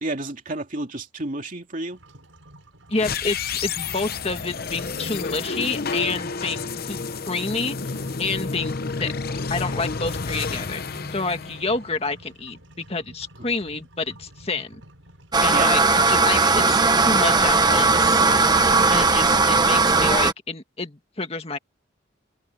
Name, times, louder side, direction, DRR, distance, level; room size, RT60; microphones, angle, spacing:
voice 1, 0.0-2.0 15.5-15.7, right 2 dB, 45° right, 2.7 m, -30 dB
sound 1, 1.9-17.8, right 1 dB, 90° right, 7.4 m, -50 dB
sound 2, 2.9-12.2, left 4 dB, 50° left, 0.9 m, -30 dB
voice 2, 2.9-3.4 3.6-7.0 7.3-7.8 8.2-9.1 9.5-14.8 15.4-18.2 18.9-21.6, left 3 dB, 30° left, 2.0 m, -28 dB
sound 3, 15.3-20.3, right 3 dB, 20° right, 1.2 m, -18 dB
open air
head